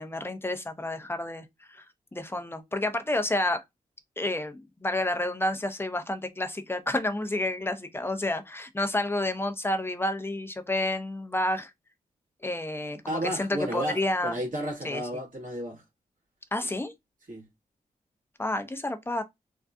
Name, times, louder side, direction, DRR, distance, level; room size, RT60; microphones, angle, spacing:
voice 1, 0.0-1.8 2.1-3.6 4.2-11.7 12.4-14.4 14.8-15.0 16.5-16.9 18.4-19.2, left 1 dB, 15° left, 0.7 m, -30 dB
voice 2, 13.1-15.8 17.3-17.5, equal, 60° right, 1.9 m, -32 dB
3.6 x 2.2 x 2.6 m
cardioid pair, 60°, 15 cm